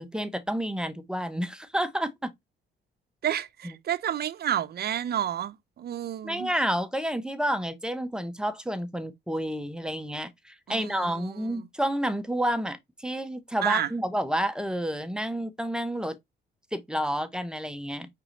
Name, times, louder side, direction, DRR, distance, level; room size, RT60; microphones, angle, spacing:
voice 1, 0.0-2.3 3.6-3.7 6.2-16.2 16.7-18.1, equal, 5° right, 0.8 m, -30 dB
voice 2, 3.2-6.5 10.7-11.7 13.6-13.9, right 10 dB, 55° right, 0.6 m, -30 dB
4.8 x 3.7 x 2.8 m
cardioid pair, 90°, 20 cm